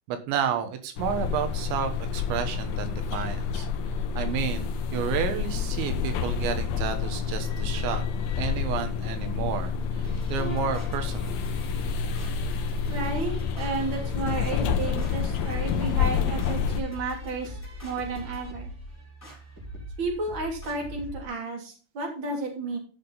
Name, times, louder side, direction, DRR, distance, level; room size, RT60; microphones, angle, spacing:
voice 1, 0.1-3.7 4.2-8.0 8.4-11.4, right 8 dB, 90° right, 7 dB, 3.6 m, -31 dB
sound 1, 1.0-16.8, left 6 dB, 75° left, 2.4 m, -29 dB
sound 2, 10.0-21.3, left 1 dB, 5° left, 3.9 m, -41 dB
voice 2, 12.9-18.7 20.0-22.8, right 3 dB, 30° right, 0 dB, 3.2 m, -32 dB
14.0 x 6.0 x 4.1 m, 0.38 s
omnidirectional pair, 5.1 m